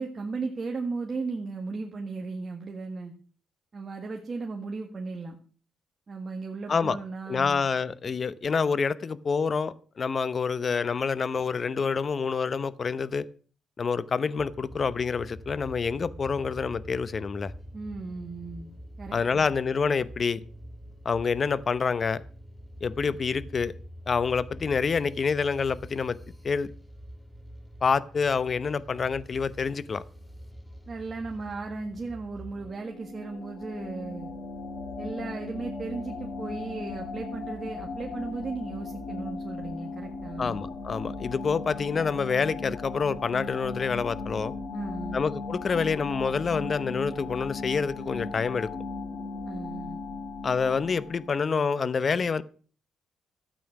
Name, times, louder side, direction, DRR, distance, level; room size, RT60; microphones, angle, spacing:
voice 1, 0.0-3.1 3.7-5.4 6.1-7.6 17.7-18.7 19.0-19.4 30.9-34.3 35.0-40.6 44.7-45.2 49.4-50.0, right 4 dB, 35° right, 1.7 m, -36 dB
voice 2, 7.3-13.2 13.8-17.5 19.1-20.4 21.0-22.2 22.8-23.7 24.1-26.2 26.4-26.7 27.8-30.0 40.4-44.5 45.1-48.7 50.4-52.4, left 5 dB, 40° left, 0.8 m, -27 dB
sound 1, 14.4-32.7, equal, 10° left, 2.7 m, -45 dB
sound 2, 32.5-51.4, left 3 dB, 70° left, 2.2 m, -37 dB
13.0 x 8.6 x 5.9 m
cardioid pair, 90°, 0 cm